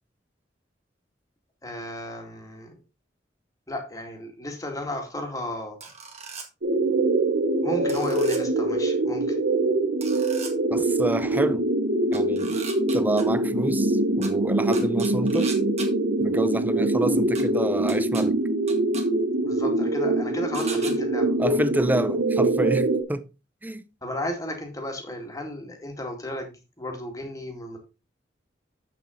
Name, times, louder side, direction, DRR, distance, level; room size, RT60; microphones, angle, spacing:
voice 1, 1.6-2.8 3.7-5.8 7.6-9.4 19.4-21.4 24.0-27.8, left 1 dB, 20° left, 2.1 m, -34 dB
sound 1, 5.8-6.5 7.9-8.4 10.0-10.5 12.1-13.2 14.2-14.3 14.7-15.9 17.4-17.5 17.9-18.2 18.7-19.0 20.5-20.9, right 5 dB, 35° right, 2.0 m, -37 dB
sound 2, 6.6-23.0, right 2 dB, 75° right, 1.2 m, -24 dB
voice 2, 10.7-11.6 12.1-12.6 12.9-15.5 16.2-18.4 21.4-23.2 23.6-23.8, right 1 dB, 10° right, 0.6 m, -28 dB
8.0 x 7.3 x 3.8 m
head